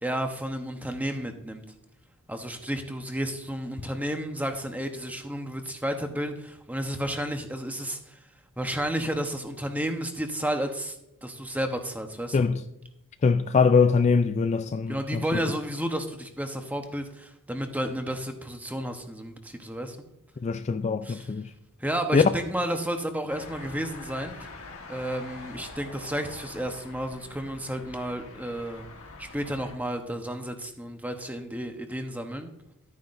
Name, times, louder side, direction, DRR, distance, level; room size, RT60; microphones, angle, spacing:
voice 1, 0.0-1.6 2.3-8.2 8.6-11.0 11.2-12.5 14.9-20.0 21.0-21.3 21.8-24.6 24.9-28.9 29.2-32.5, right 1 dB, 5° right, 1.0 m, -32 dB
voice 2, 13.2-15.2 20.4-21.5 22.1-22.3, left 5 dB, 30° left, 0.3 m, -22 dB
sound 1, 23.3-29.8, left 3 dB, 65° left, 1.4 m, -45 dB
12.5 x 9.5 x 2.6 m
head